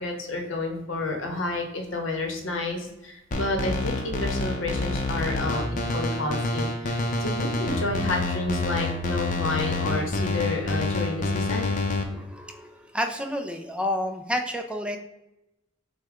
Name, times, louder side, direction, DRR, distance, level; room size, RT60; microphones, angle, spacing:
voice 1, 0.0-11.7, left 2 dB, 85° left, 3 dB, 1.0 m, -30 dB
sound 1, 3.3-12.0, left 2 dB, 40° left, 0.7 m, -28 dB
voice 2, 12.1-15.0, left 1 dB, 5° right, 4 dB, 0.5 m, -30 dB
6.5 x 2.2 x 3.6 m, 0.91 s
head